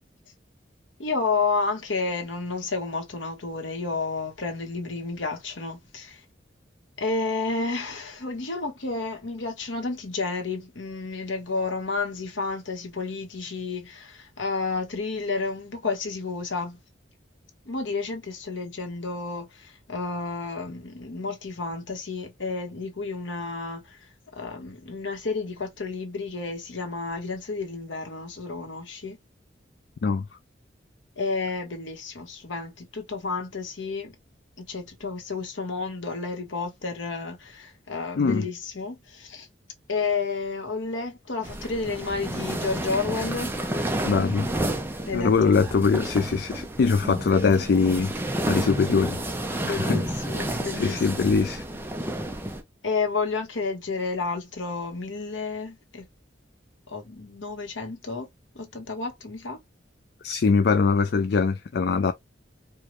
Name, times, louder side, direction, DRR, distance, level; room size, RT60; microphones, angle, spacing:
voice 1, 1.0-6.2 7.0-16.8 17.6-29.2 31.2-34.1 34.6-39.5 39.9-43.5 45.1-45.9 49.6-51.1 52.8-56.0 56.9-58.3 58.5-59.6, left 4 dB, 90° left, 1.2 m, -31 dB
sound 1, 41.4-52.6, right 1 dB, 10° right, 0.7 m, -30 dB
voice 2, 44.0-44.5 45.1-48.1 48.4-49.2 49.7-50.0 50.7-51.6 60.2-62.1, left 5 dB, 60° left, 0.4 m, -22 dB
4.6 x 2.3 x 3.0 m
head